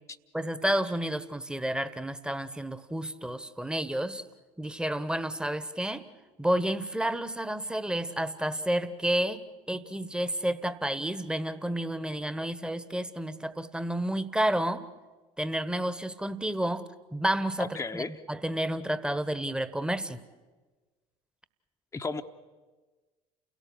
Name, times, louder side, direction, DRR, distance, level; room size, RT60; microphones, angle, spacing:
voice 1, 0.3-4.2 4.6-6.0 6.4-14.8 15.4-20.2, right 1 dB, 5° right, 14 dB, 1.3 m, -30 dB
voice 2, 17.6-18.2 21.9-22.2, left 4 dB, 15° left, 5 dB, 1.0 m, -34 dB
29.5 x 17.5 x 8.0 m, 1.3 s
figure-of-eight pair, 65°, 20 cm